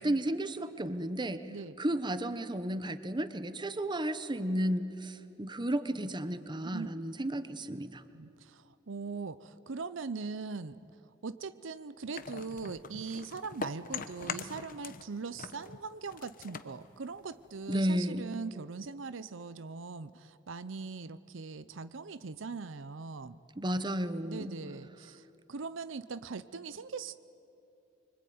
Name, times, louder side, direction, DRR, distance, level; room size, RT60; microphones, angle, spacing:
voice 1, 0.0-1.4 1.8-8.0 17.7-18.3 23.6-24.6, right 1 dB, 25° right, 11 dB, 1.0 m, -33 dB
voice 2, 8.1-10.9 11.2-23.4 24.2-27.2, right 4 dB, 70° right, 14 dB, 0.7 m, -41 dB
sound 1, 12.1-15.1 15.4-17.7, left 5 dB, 45° left, 1.0 m, -42 dB
25.0 x 24.5 x 9.4 m, 2.7 s
head